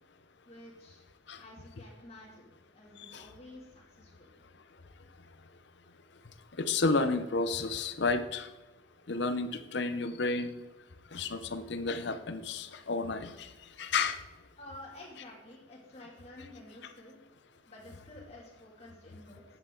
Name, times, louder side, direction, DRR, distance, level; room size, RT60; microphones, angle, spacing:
voice 1, 0.5-1.0 1.4-4.4 14.6-17.2 17.7-19.4, left 1 dB, 30° left, -3 dB, 2.6 m, -51 dB
voice 2, 6.6-8.5 9.1-10.6 11.1-13.5 13.8-14.2, left 3 dB, 60° left, 9 dB, 0.7 m, -31 dB
11.0 x 8.0 x 3.9 m, 1.1 s
head